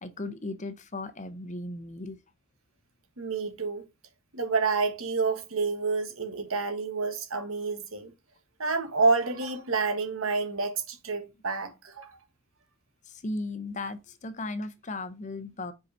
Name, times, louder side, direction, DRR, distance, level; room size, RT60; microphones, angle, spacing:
voice 1, 0.0-2.2 13.1-15.7, left 2 dB, 35° left, 0.7 m, -36 dB
voice 2, 3.2-3.8 4.3-8.1 8.6-12.2, right 4 dB, 75° right, 1.3 m, -28 dB
5.3 x 4.7 x 5.3 m
head